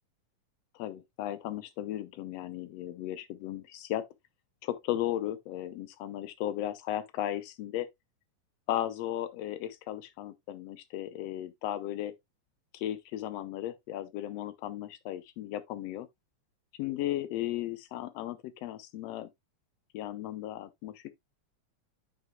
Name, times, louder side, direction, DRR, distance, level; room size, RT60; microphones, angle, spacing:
voice 1, 0.8-4.1 4.6-7.9 8.7-12.1 12.7-16.1 16.8-19.3 19.9-21.1, left 13 dB, 70° left, 1.7 m, -35 dB
9.3 x 6.1 x 2.2 m
omnidirectional pair, 3.5 m